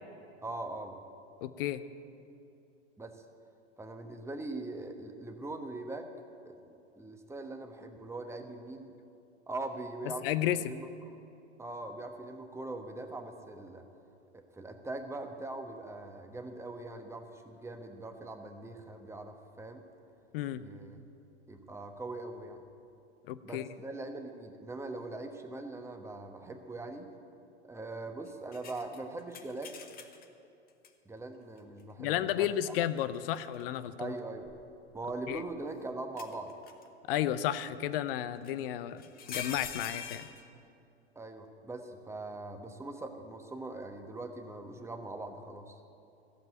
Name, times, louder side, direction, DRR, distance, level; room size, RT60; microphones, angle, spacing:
voice 1, 0.4-1.0 3.0-3.1 3.8-6.1 6.4-6.6 7.0-8.9 9.5-11.2 11.6-13.8 14.3-19.8 20.5-21.0 21.5-22.6 23.4-27.1 27.7-29.8 31.0-32.5 34.0-34.5 34.9-36.5 41.1-45.8, right 2 dB, 10° right, 5 dB, 1.2 m, -41 dB
voice 2, 1.4-1.8 10.2-10.7 20.3-20.6 23.3-23.7 32.0-34.1 35.3-35.4 37.1-39.0 39.3-40.3, left 12 dB, 55° left, 14 dB, 0.7 m, -32 dB
sound 1, 28.5-30.3 30.8-30.9 33.0-33.6 34.4-35.5 36.2-36.9 38.4-38.5 39.0-40.4, left 7 dB, 25° left, 1.1 m, -43 dB
14.5 x 7.5 x 9.1 m, 2.7 s
figure-of-eight pair, 90°, 34 cm